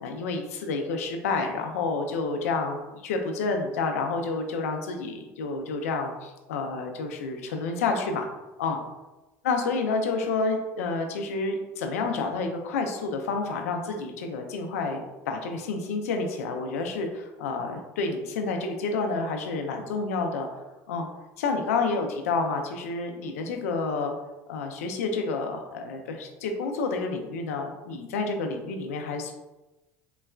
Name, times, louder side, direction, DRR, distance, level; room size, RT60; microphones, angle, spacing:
voice 1, 0.0-8.3 8.6-8.8 9.4-20.6 20.9-21.1 21.4-24.1 24.5-29.3, left 4 dB, 90° left, 4 dB, 0.4 m, -29 dB
3.9 x 2.1 x 2.3 m, 1.1 s
supercardioid pair, 95°, 8 cm